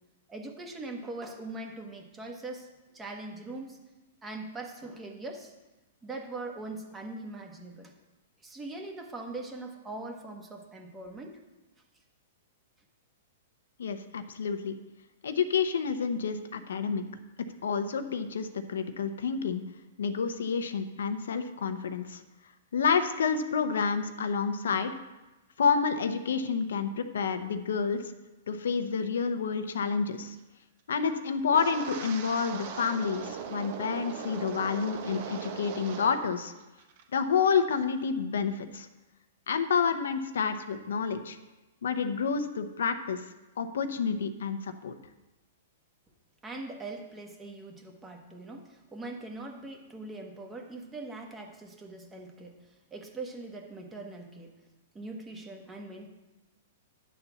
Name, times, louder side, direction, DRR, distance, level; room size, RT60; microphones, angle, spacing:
voice 1, 0.3-2.7 2.9-3.8 4.2-5.5 6.0-7.9 8.4-11.4 46.4-52.6 52.9-54.5 54.9-56.1, right 2 dB, 15° right, 2 dB, 1.3 m, -41 dB
voice 2, 13.8-14.7 15.2-17.0 17.6-19.6 20.0-22.2 22.7-24.9 25.6-28.0 28.5-30.4 30.9-36.5 37.1-38.9 39.5-41.4 41.8-43.2 43.6-44.9, left 6 dB, 85° left, 9 dB, 0.8 m, -29 dB
Wind, 31.5-36.3 36.6-37.0 37.5-37.7, right 7 dB, 55° right, 1.1 m, -39 dB
10.5 x 4.2 x 7.0 m, 1.1 s
hypercardioid pair, 140°, 0 cm